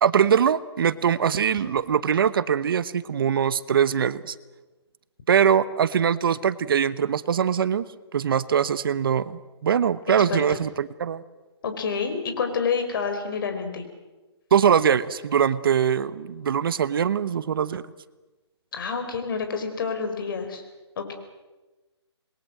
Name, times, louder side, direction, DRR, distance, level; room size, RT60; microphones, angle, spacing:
voice 1, 0.0-4.3 5.3-7.9 8.1-11.2 14.5-17.8, right 8 dB, 50° right, 15 dB, 1.0 m, -22 dB
voice 2, 11.6-13.8 18.7-20.6 21.0-21.1, left 5 dB, 50° left, 6 dB, 4.8 m, -28 dB
27.5 x 21.5 x 7.8 m, 1.2 s
hypercardioid pair, 155°, 15 cm